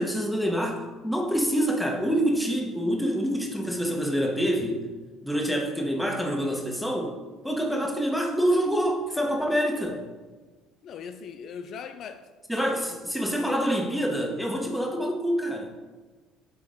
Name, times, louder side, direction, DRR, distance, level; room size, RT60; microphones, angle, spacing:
voice 1, 0.0-4.8 5.2-7.2 7.4-10.0 12.5-15.8, equal, ahead, 1 dB, 1.4 m, -26 dB
voice 2, 10.8-12.3 12.5-12.9, left 6 dB, 60° left, 9 dB, 0.4 m, -40 dB
9.1 x 3.9 x 3.8 m, 1.3 s
supercardioid pair, 75°, 0 cm